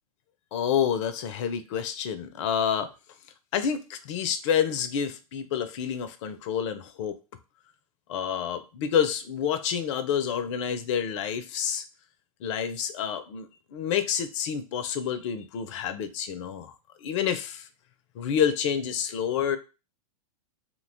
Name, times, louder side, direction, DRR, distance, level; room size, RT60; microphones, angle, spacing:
voice 1, 0.5-2.9 3.5-7.2 8.1-11.8 12.4-13.5 13.7-16.7 17.0-17.7 18.2-19.6, left 8 dB, 50° left, 10 dB, 0.4 m, -28 dB
2.7 x 2.2 x 2.6 m, 0.29 s
hypercardioid pair, 100°, 19 cm